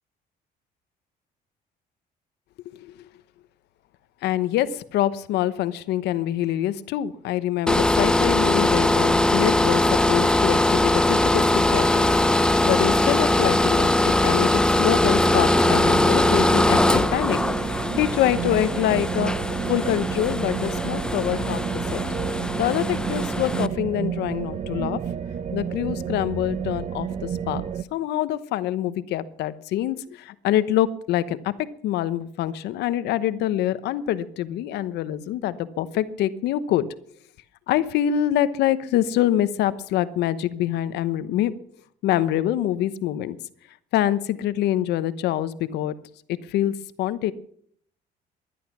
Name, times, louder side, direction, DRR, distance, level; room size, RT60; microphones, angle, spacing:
voice 1, 4.2-12.0 12.4-19.3 19.7-22.0 22.6-25.0 25.5-27.6 27.9-31.5 31.8-36.8 37.7-41.5 42.0-43.4 43.9-45.9 46.5-47.3, left 12 dB, 80° left, 15 dB, 1.0 m, -25 dB
sound 1, 7.7-23.7, left 1 dB, 5° left, 0.7 m, -21 dB
sound 2, 14.9-27.8, right 8 dB, 40° right, 0.9 m, -31 dB
19.5 x 11.5 x 6.1 m, 0.64 s
cardioid pair, 110°, 17 cm